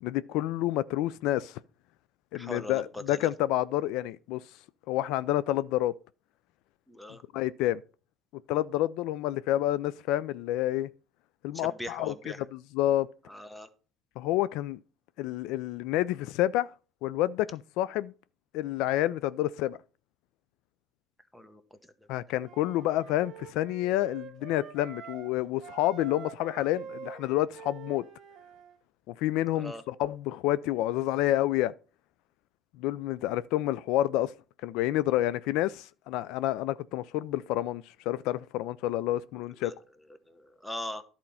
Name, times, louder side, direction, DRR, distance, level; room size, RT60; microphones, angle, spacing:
voice 1, 0.0-1.6 2.3-4.4 4.9-5.9 7.3-7.8 8.5-10.9 11.4-13.1 14.2-14.8 15.2-16.7 17.0-18.1 18.5-19.8 22.1-28.0 29.2-31.7 32.8-34.3 34.6-39.7, left 14 dB, 75° left, 0.3 m, -29 dB
voice 2, 2.3-3.3 6.9-7.2 11.5-12.4 13.3-13.7 21.3-21.6 29.6-29.8 39.6-39.7 40.3-41.0, left 1 dB, 5° left, 1.0 m, -40 dB
Wind instrument woodwind instrument, 22.4-25.3 25.6-28.8, right 8 dB, 45° right, 1.4 m, -46 dB
10.5 x 4.3 x 5.5 m
cardioid pair, 115°, 0 cm